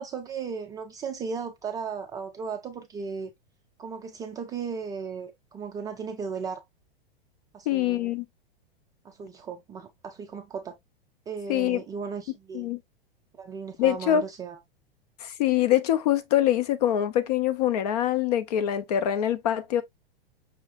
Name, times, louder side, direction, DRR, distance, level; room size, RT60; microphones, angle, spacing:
voice 1, 0.0-3.3 3.8-6.6 7.5-8.2 9.0-10.8 11.3-12.7 13.3-14.6, right 6 dB, 15° right, 0.4 m, -36 dB
voice 2, 7.7-8.2 11.5-11.8 12.5-12.8 13.8-14.2 15.2-19.8, left 11 dB, 45° left, 0.7 m, -24 dB
5.7 x 3.1 x 2.3 m
figure-of-eight pair, 100°, 29 cm